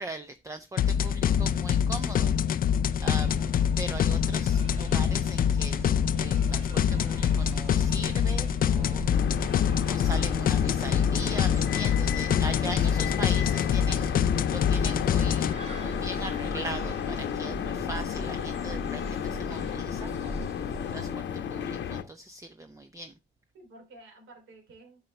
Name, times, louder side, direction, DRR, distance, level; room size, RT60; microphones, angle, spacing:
voice 1, 0.0-2.3 3.0-3.3 3.8-5.9 6.2-9.1 9.9-20.5 20.9-23.1, right 1 dB, 15° right, 0.7 m, -40 dB
sound 1, 0.8-15.5, left 8 dB, 45° left, 0.4 m, -25 dB
sound 2, 3.0-21.1, right 1 dB, 35° right, 3.4 m, -40 dB
voice 2, 3.2-3.5 12.7-13.1 23.5-25.0, right 2 dB, 80° right, 3.2 m, -51 dB
sound 3, 9.1-22.0, left 8 dB, 65° left, 0.9 m, -33 dB
9.5 x 5.8 x 3.2 m
cardioid pair, 90°, 20 cm